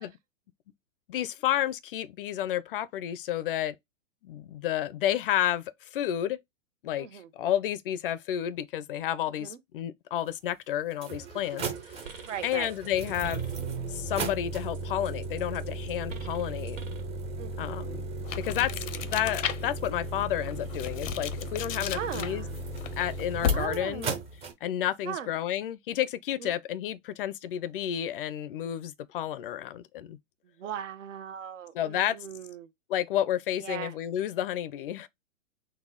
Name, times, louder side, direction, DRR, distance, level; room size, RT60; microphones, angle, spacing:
voice 1, 1.1-3.8 4.2-6.4 6.8-13.4 13.9-16.8 17.6-18.1 18.4-18.7 19.0-22.5 23.0-24.1 24.6-30.2 31.7-32.2 32.9-35.1, left 11 dB, 45° left, 0.5 m, -31 dB
voice 2, 7.0-7.3 9.4-9.6 12.2-12.7 17.4-18.0 18.8-19.0 21.9-22.6 23.5-24.2 25.0-25.3 26.4-26.5 30.6-32.7 33.6-34.0, right 9 dB, 70° right, 1.0 m, -39 dB
sound 1, 10.3-10.4 10.9-24.5, right 3 dB, 15° right, 0.6 m, -36 dB
sound 2, 11.8-14.3 14.6-17.2, right 5 dB, 85° right, 1.9 m, -47 dB
sound 3, 18.2-19.9 20.4-23.9, left 8 dB, 80° left, 0.7 m, -34 dB
4.1 x 2.2 x 3.6 m
hypercardioid pair, 130°, 38 cm